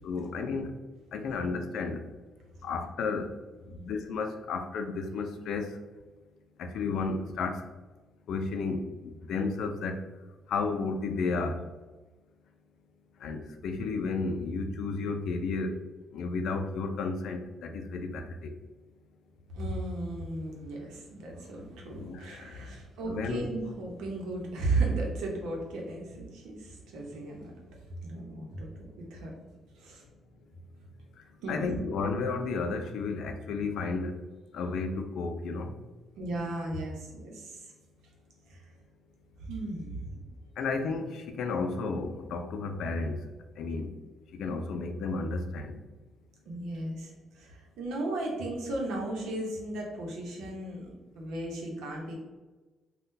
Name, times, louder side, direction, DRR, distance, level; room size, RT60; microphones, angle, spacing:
voice 1, 0.0-0.8 1.1-2.1 2.6-3.3 3.6-5.8 6.6-7.7 8.3-10.1 10.5-11.6 13.2-15.8 16.1-18.5 21.8-22.8 23.1-23.5 28.1-28.3 31.2-34.2 34.5-35.7 40.6-43.3 43.5-44.0 44.3-45.8, left 4 dB, 75° left, 6 dB, 0.4 m, -33 dB
voice 2, 19.5-27.5 28.0-29.3 29.7-30.1 31.4-31.8 36.2-37.7 38.5-38.6 39.4-40.2 46.4-52.1, right 2 dB, 85° right, -1 dB, 0.8 m, -35 dB
3.6 x 2.3 x 2.6 m, 1.2 s
cardioid pair, 90°, 0 cm